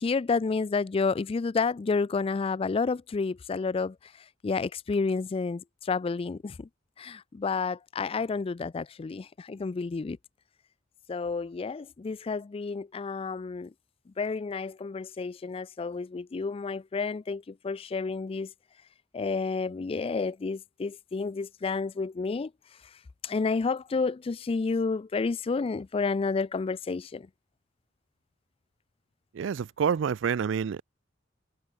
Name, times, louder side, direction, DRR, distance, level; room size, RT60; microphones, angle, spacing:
voice 1, 0.0-3.9 4.4-6.7 7.0-10.2 11.1-13.7 14.2-18.5 19.1-22.5 23.2-27.3, left 4 dB, 30° left, 0.3 m, -30 dB
voice 2, 29.3-30.8, right 7 dB, 65° right, 0.4 m, -28 dB
head